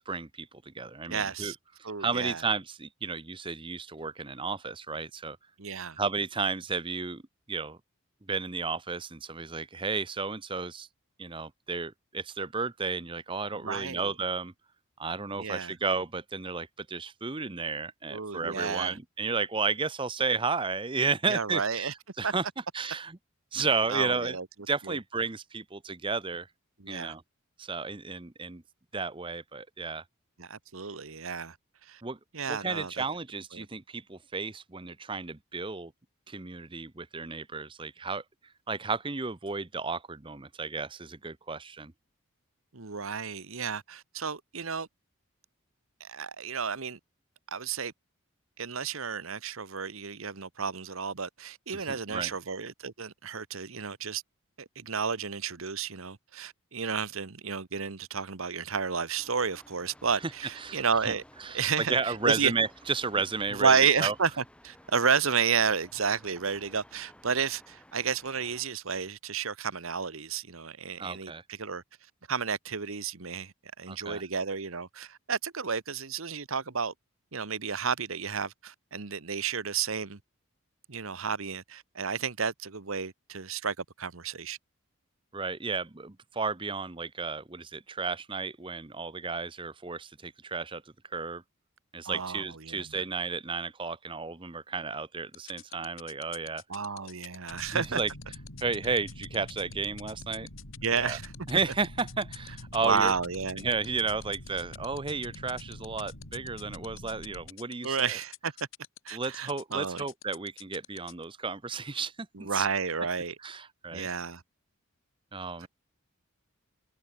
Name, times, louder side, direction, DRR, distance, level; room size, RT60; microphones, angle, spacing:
voice 1, 0.0-1.5 2.0-5.4 6.0-7.2 7.5-7.8 8.3-10.9 11.2-14.5 15.0-22.4 22.7-23.2 23.5-24.4 24.7-26.5 26.9-27.2 27.6-28.6 28.9-30.0 32.0-32.2 32.5-35.9 36.3-38.2 38.7-41.9 51.7-52.3 60.6-61.1 61.4-64.1 71.0-71.4 73.9-74.2 85.3-90.8 91.1-91.4 91.9-96.6 97.7-98.1 98.6-100.5 100.9-101.2 101.5-103.1 103.6-108.2 109.1-112.7 113.4-114.1 115.3-115.7, right 4 dB, 25° right, 0.8 m, -33 dB
voice 2, 1.1-1.6 1.8-2.4 5.6-6.0 13.6-14.1 15.3-15.7 18.1-19.0 21.3-21.9 22.2-22.3 23.9-24.5 24.9-25.0 26.8-27.1 30.4-31.6 31.9-32.0 32.3-33.0 33.5-33.6 42.7-44.9 46.0-47.0 47.5-47.9 48.6-54.2 54.6-61.2 61.5-62.5 63.5-71.8 72.3-76.9 77.3-80.2 80.9-84.6 92.0-93.0 96.7-98.0 100.8-101.3 102.8-103.7 107.8-108.5 109.0-110.0 112.3-113.3 113.9-114.4 115.6-115.7, right 6 dB, 75° right, 1.2 m, -31 dB
sound 1, 59.2-68.6, left 1 dB, 5° left, 3.9 m, -56 dB
sound 2, 95.3-111.2, left 13 dB, 65° left, 1.8 m, -46 dB
sound 3, 97.5-107.5, left 1 dB, 85° left, 4.3 m, -46 dB
head